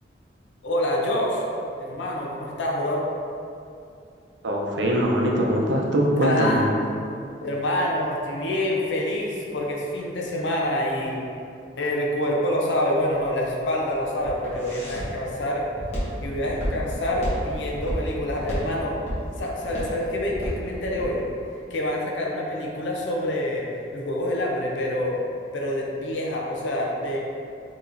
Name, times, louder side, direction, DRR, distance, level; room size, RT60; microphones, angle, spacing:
voice 1, 0.6-1.4 1.8-3.1 6.2-6.7 7.4-11.2 11.8-15.7 16.2-19.0 19.4-21.2 21.7-23.7 23.9-25.2 25.5-27.2, left 1 dB, 85° left, -2 dB, 0.6 m, -26 dB
voice 2, 4.4-6.7, equal, 80° right, -1 dB, 0.6 m, -22 dB
Walk footsteps, 13.2-21.1, equal, 35° left, 1.2 m, -32 dB
4.8 x 3.0 x 2.6 m, 2.5 s
head